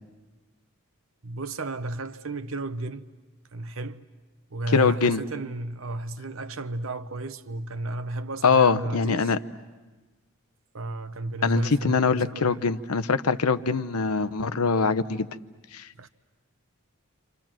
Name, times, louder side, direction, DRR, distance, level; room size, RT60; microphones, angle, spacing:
voice 1, 1.2-3.0 3.5-4.0 4.5-9.3 10.7-12.6 16.0-16.1, right 2 dB, 65° right, 0.9 m, -33 dB
voice 2, 4.7-5.2 8.4-9.4 11.4-15.3 15.7-16.1, left 4 dB, 85° left, 0.8 m, -23 dB
29.0 x 26.5 x 7.5 m
head